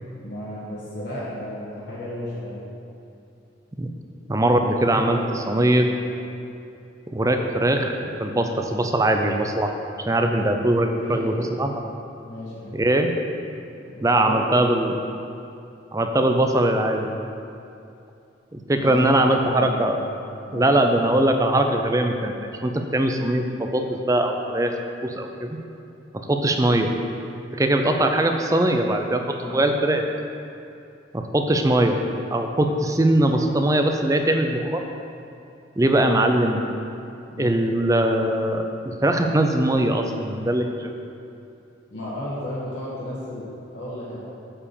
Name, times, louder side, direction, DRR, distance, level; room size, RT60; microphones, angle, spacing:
voice 1, 0.2-2.6 4.9-5.4 6.0-6.2 11.0-11.3 12.2-12.8 13.9-14.9 18.8-19.9 20.5-20.7 29.4-29.6 37.3-37.5 41.9-43.4 43.7-44.3, left 1 dB, 65° left, -9 dB, 1.5 m, -33 dB
voice 2, 4.3-5.9 7.1-9.7 10.1-11.8 12.7-13.1 14.0-14.9 15.9-17.1 18.5-20.0 20.5-22.3 22.6-25.6 26.1-26.9 27.5-30.1 31.1-32.0 32.3-34.8 35.8-36.6 37.4-40.9, right 1 dB, 15° right, 5 dB, 0.5 m, -21 dB
8.6 x 4.8 x 7.0 m, 2.6 s
head